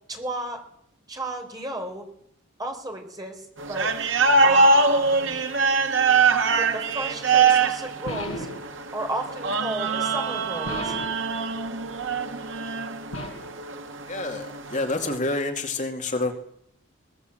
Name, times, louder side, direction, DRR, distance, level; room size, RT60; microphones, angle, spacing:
voice 1, 0.1-0.6 1.1-2.0 2.6-3.9 4.4-5.4 6.6-8.5 8.9-11.0, right 1 dB, 20° right, 3 dB, 4.2 m, -33 dB
sound 1, 3.6-15.2, right 4 dB, 65° right, 1.5 m, -23 dB
sound 2, 8.1-8.7 10.7-11.2 13.1-13.6, left 1 dB, 85° left, 7.6 m, -34 dB
voice 2, 14.1-16.3, left 2 dB, 40° left, 3 dB, 2.5 m, -28 dB
23.0 x 18.5 x 8.0 m, 0.73 s
head